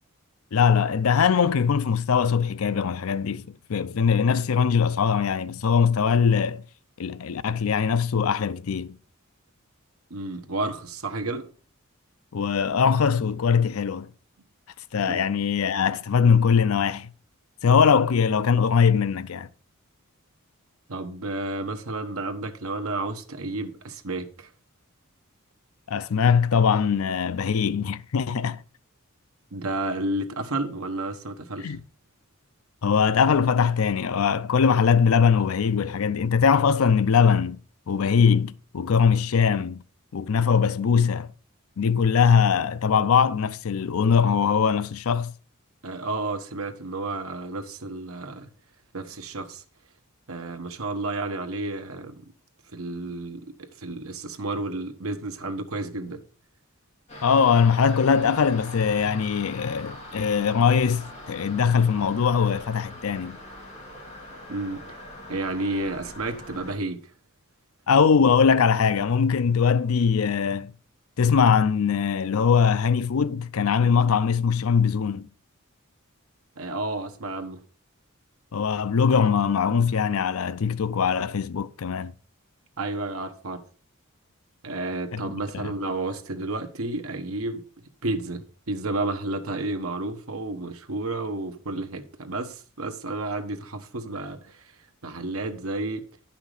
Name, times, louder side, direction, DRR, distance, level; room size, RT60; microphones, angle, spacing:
voice 1, 0.5-3.4 3.7-6.6 7.0-9.0 12.3-14.1 14.9-17.1 17.6-19.5 25.9-28.6 31.6-31.8 32.8-37.6 37.9-39.8 40.1-41.3 41.8-45.3 57.2-63.4 67.9-70.7 71.2-75.2 78.5-82.1 85.1-85.7, left 6 dB, 80° left, 0.5 m, -21 dB
voice 2, 10.1-11.4 15.0-15.2 20.9-24.5 29.5-31.8 45.8-48.5 48.9-49.6 50.3-52.2 52.7-56.2 64.5-65.0 65.3-67.0 76.6-77.6 82.8-83.6 84.6-87.6 88.0-94.6 95.0-96.1, right 2 dB, 80° right, 1.2 m, -31 dB
sound 1, 57.1-66.7, left 1 dB, 35° left, 3.6 m, -42 dB
10.5 x 5.9 x 4.9 m
head